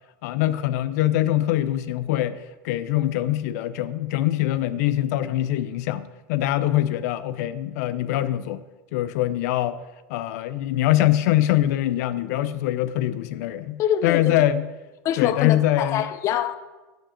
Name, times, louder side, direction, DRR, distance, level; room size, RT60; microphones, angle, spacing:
voice 1, 0.2-8.6 8.9-9.8 10.1-14.7 15.2-16.1, left 13 dB, 75° left, 0.5 m, -23 dB
voice 2, 13.8-14.3 15.0-16.5, left 10 dB, 35° left, 0.6 m, -25 dB
7.8 x 7.5 x 7.0 m
supercardioid pair, 160°, 9 cm